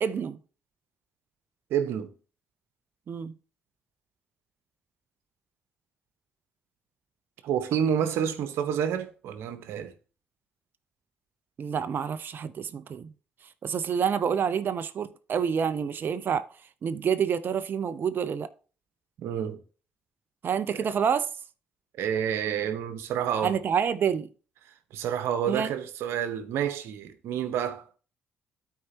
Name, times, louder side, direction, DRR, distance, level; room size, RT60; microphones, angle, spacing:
voice 1, 0.0-0.4 3.1-3.3 11.6-13.1 13.6-16.5 16.8-18.5 20.4-21.3 23.4-24.3 25.5-25.7, right 7 dB, 50° right, 0.6 m, -28 dB
voice 2, 1.7-2.1 7.4-9.9 19.2-19.6 20.8-20.9 22.0-23.6 24.9-27.9, right 8 dB, 70° right, 1.1 m, -29 dB
12.5 x 4.6 x 2.9 m
hypercardioid pair, 50°, 4 cm